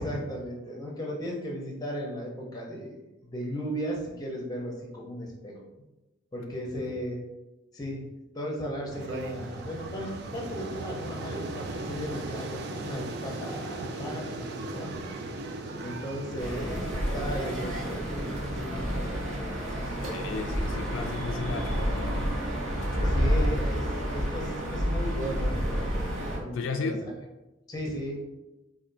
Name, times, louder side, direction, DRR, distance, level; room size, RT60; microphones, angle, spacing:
voice 1, 0.0-5.5 6.3-7.2 7.7-8.0 8.3-14.9 15.8-19.4 23.1-26.9 27.7-28.2, equal, 20° left, -1 dB, 0.6 m, -36 dB
voice 2, 6.5-7.0 19.8-22.4 22.7-23.3 26.5-27.0, left 4 dB, 70° left, 4 dB, 0.3 m, -35 dB
sound 1, 8.9-23.5, right 2 dB, 50° right, 0.4 m, -39 dB
sound 2, 16.4-26.4, equal, 75° right, 1.0 m, -29 dB
4.2 x 2.5 x 2.5 m, 1.0 s
head